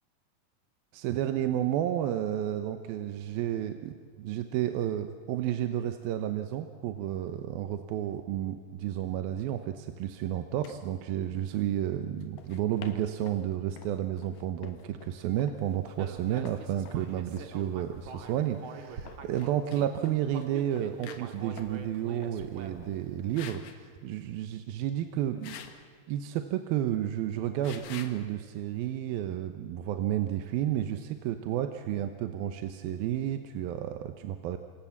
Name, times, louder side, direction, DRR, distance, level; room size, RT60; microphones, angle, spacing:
voice 1, 0.9-25.6 26.1-34.6, right 11 dB, 80° right, 8 dB, 2.8 m, -31 dB
sound 1, 10.6-10.8 12.2-13.4 13.8-17.0 17.3-17.5 18.8-20.5 20.8-21.8 22.1-22.4 22.8-23.0 23.3-23.8 25.4-25.8 27.6-28.2, left 8 dB, 65° left, 3.1 m, -47 dB
Human voice, 16.0-19.9 20.3-23.0, right 5 dB, 55° right, 2.9 m, -45 dB
28.0 x 26.5 x 7.2 m, 2.1 s
omnidirectional pair, 4.3 m